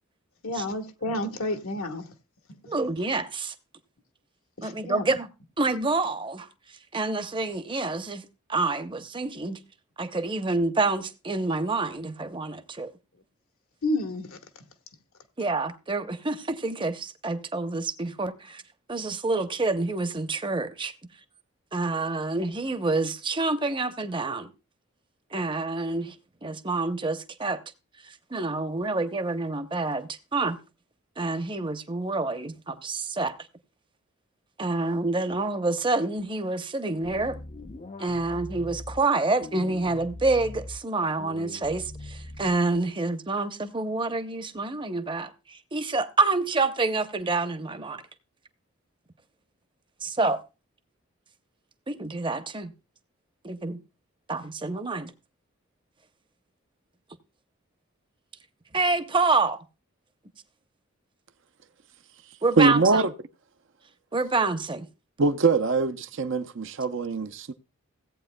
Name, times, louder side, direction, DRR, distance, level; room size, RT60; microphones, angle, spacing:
voice 1, 0.4-2.1 2.6-2.7 4.6-5.0 13.8-14.3, left 1 dB, 75° left, 1.3 m, -30 dB
voice 2, 2.7-3.5 4.6-5.3 5.6-6.5 6.9-8.2 8.5-9.6 10.0-12.9 15.4-18.6 18.9-20.9 21.7-24.5 25.3-26.1 26.4-27.6 28.3-30.6 31.2-33.3 34.6-37.4 38.0-48.0 50.0-50.4 51.9-52.7 53.4-53.8 54.3-55.1 58.7-59.6 62.4-63.0 64.1-64.9, right 3 dB, 20° right, 0.7 m, -27 dB
sound 1, 37.0-39.0 39.4-40.8 41.2-42.8, left 2 dB, 30° left, 0.5 m, -41 dB
voice 3, 62.6-63.1 65.2-67.5, right 3 dB, 55° right, 0.6 m, -23 dB
17.0 x 8.5 x 2.2 m
head